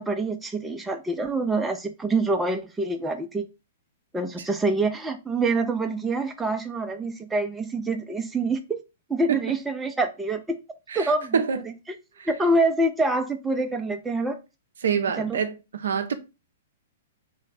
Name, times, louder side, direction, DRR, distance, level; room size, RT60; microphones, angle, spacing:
voice 1, 0.0-3.5 4.1-8.8 9.1-10.6 10.9-11.7 12.3-14.4 15.2-15.4, right 2 dB, 10° right, 0.4 m, -26 dB
voice 2, 10.9-11.6 12.2-12.3 14.8-16.2, right 6 dB, 70° right, 0.5 m, -26 dB
3.2 x 2.1 x 4.0 m
hypercardioid pair, 120°, 0 cm